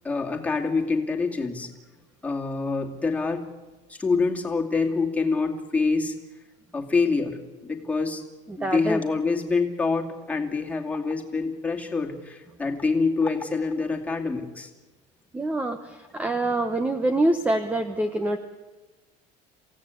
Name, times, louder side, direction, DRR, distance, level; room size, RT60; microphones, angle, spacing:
voice 1, 0.0-1.7 2.2-3.4 3.9-6.1 6.7-7.4 7.6-8.2 8.6-14.7, left 4 dB, 10° left, 1 dB, 2.5 m, -26 dB
voice 2, 8.5-9.0 15.3-18.4, right 1 dB, 10° right, 9 dB, 1.0 m, -25 dB
27.5 x 16.5 x 8.4 m, 1.2 s
cardioid pair, 155°, 15 cm